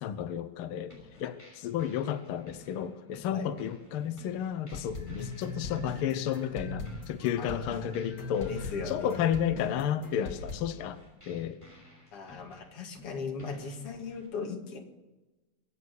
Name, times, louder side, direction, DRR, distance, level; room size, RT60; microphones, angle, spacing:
voice 1, 0.0-11.0 11.3-11.6, left 9 dB, 80° left, 11 dB, 1.2 m, -32 dB
sound 1, 0.9-14.3, left 1 dB, 5° left, 5.6 m, -55 dB
sound 2, 4.7-10.6, left 3 dB, 30° left, 2.8 m, -39 dB
voice 2, 7.4-7.9 8.5-9.2 12.1-14.8, left 5 dB, 50° left, 3 dB, 2.8 m, -38 dB
23.0 x 9.3 x 6.4 m, 1.1 s
omnidirectional pair, 3.5 m